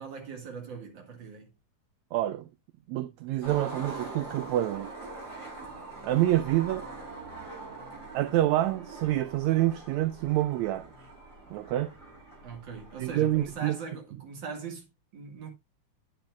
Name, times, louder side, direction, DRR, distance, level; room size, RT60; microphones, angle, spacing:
voice 1, 0.0-1.5 12.4-14.9 15.1-15.5, right 5 dB, 40° right, 2.3 m, -41 dB
voice 2, 2.1-2.5 2.9-4.9 6.0-6.9 8.1-10.9 11.5-11.9 13.0-13.8, right 14 dB, 80° right, 1.7 m, -27 dB
Skateboard, 3.4-13.6, right 3 dB, 10° right, 6.9 m, -43 dB
9.4 x 9.0 x 2.5 m
omnidirectional pair, 3.6 m